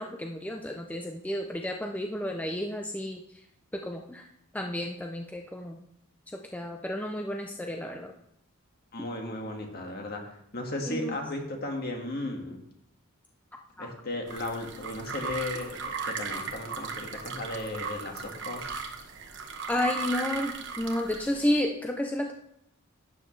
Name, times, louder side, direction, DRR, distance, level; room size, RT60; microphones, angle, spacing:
voice 1, 0.0-3.2 3.7-4.3 4.5-5.8 6.3-8.1 10.9-11.2 13.8-13.9 19.7-22.3, left 1 dB, 5° left, 2 dB, 0.5 m, -31 dB
voice 2, 8.9-12.6 13.8-18.7, left 2 dB, 45° left, 2 dB, 1.7 m, -35 dB
sound 1, 14.3-21.6, right 5 dB, 55° right, 1.1 m, -37 dB
11.5 x 8.7 x 3.2 m, 0.75 s
head